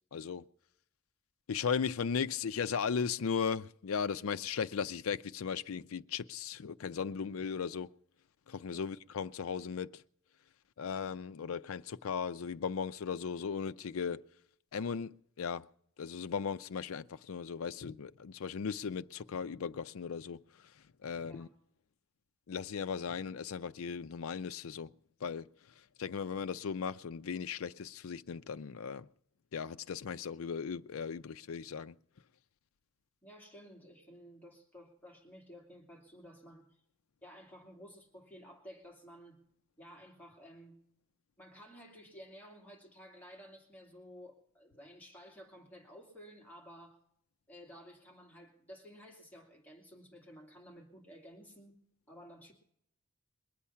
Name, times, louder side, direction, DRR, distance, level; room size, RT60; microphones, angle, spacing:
voice 1, 0.1-0.4 1.5-7.9 8.5-10.0 10.8-14.2 14.7-15.7 16.0-20.7 21.0-21.5 22.5-24.9 25.2-25.5 26.0-29.1 29.5-31.9, left 6 dB, 85° left, 0.5 m, -37 dB
voice 2, 33.2-36.7 37.2-39.4 39.8-40.8 41.4-47.0 47.5-51.7 52.1-52.5, equal, 10° left, 2.6 m, -54 dB
22.0 x 8.5 x 5.6 m
head